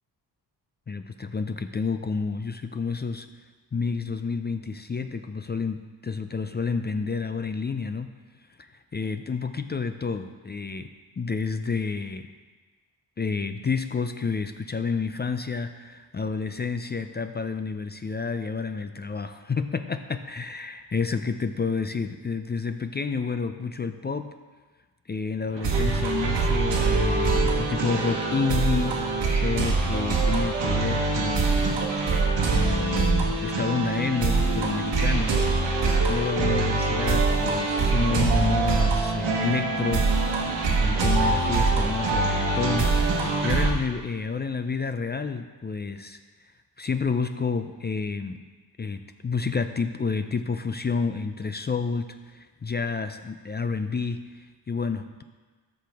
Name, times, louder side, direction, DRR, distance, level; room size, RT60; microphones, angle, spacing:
voice 1, 0.9-3.3 3.7-8.1 8.6-10.9 11.2-12.3 13.2-24.3 25.1-31.8 32.5-35.4 36.1-40.1 40.8-46.2 46.8-48.4 48.8-55.2, left 5 dB, 25° left, 8 dB, 0.4 m, -30 dB
sound 1, 25.5-43.7, right 3 dB, 90° right, 1.3 m, -24 dB
13.0 x 6.0 x 3.5 m, 1.3 s
cardioid pair, 75°, 42 cm